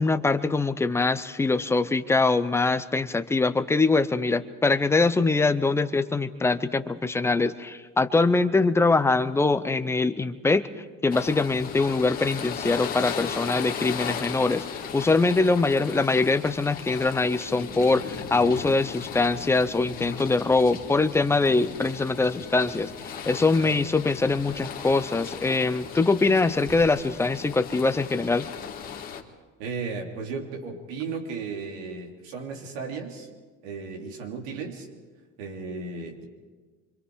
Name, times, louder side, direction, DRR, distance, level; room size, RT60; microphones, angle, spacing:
voice 1, 0.0-10.7 11.0-14.7 14.9-22.9 23.3-28.5, left 3 dB, 10° left, 11 dB, 0.5 m, -23 dB
sound 1, 11.1-29.2, left 7 dB, 30° left, 1.9 m, -37 dB
voice 2, 29.6-33.3 33.6-34.9 35.4-36.3, right 4 dB, 90° right, 1 dB, 3.2 m, -35 dB
26.0 x 25.5 x 4.7 m, 1.4 s
cardioid pair, 155°, 31 cm